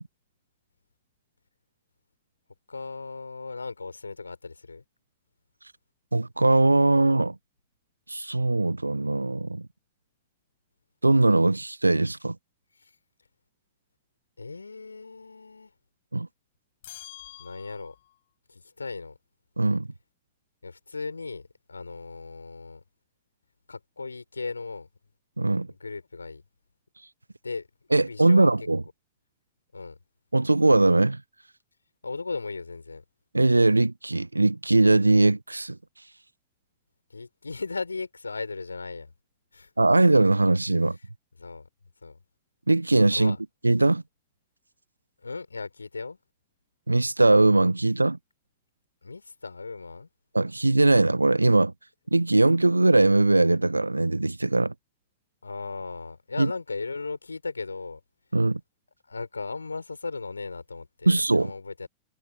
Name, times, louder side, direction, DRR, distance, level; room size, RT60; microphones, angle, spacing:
voice 1, 2.7-4.8 12.7-12.9 14.4-15.7 17.4-18.0 18.5-19.2 20.6-22.8 23.7-24.9 25.7-26.4 27.4-28.5 29.7-30.0 32.0-33.0 37.1-39.1 39.5-39.7 41.4-41.7 42.0-42.2 43.1-43.4 45.2-46.2 49.0-50.1 55.4-58.0 59.1-61.9, left 4 dB, 80° left, 4.5 m, -37 dB
voice 2, 6.1-7.4 8.1-9.7 11.0-12.4 16.1-16.3 19.6-19.9 25.4-25.7 27.9-28.8 30.3-31.2 33.3-35.8 39.8-41.0 42.7-43.3 43.6-44.0 46.9-48.2 50.3-51.7 52.1-54.7 56.4-56.5 58.3-58.6 61.1-61.5, right 2 dB, 85° right, 0.6 m, -21 dB
sound 1, 16.8-18.2, left 14 dB, 55° left, 4.1 m, -46 dB
figure-of-eight pair, 90°, 0 cm